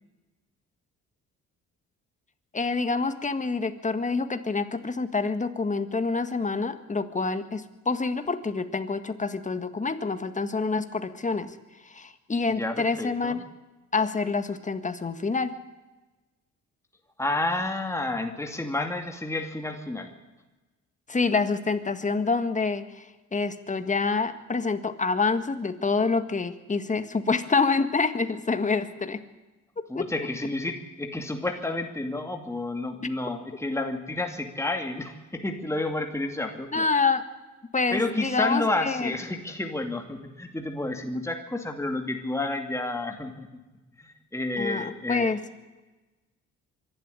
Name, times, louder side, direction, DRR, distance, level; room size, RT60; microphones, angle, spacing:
voice 1, 2.5-11.6 11.8-13.4 13.9-15.6 21.1-29.2 30.0-30.1 33.0-33.1 36.7-37.2 37.7-39.1 44.6-45.4, left 4 dB, 25° left, 9 dB, 1.7 m, -27 dB
voice 2, 12.6-13.4 17.2-20.1 29.9-36.9 37.9-43.5 44.0-45.4, left 2 dB, 10° left, 3 dB, 2.5 m, -30 dB
24.0 x 12.0 x 9.8 m, 1.1 s
cardioid pair, 90°, 30 cm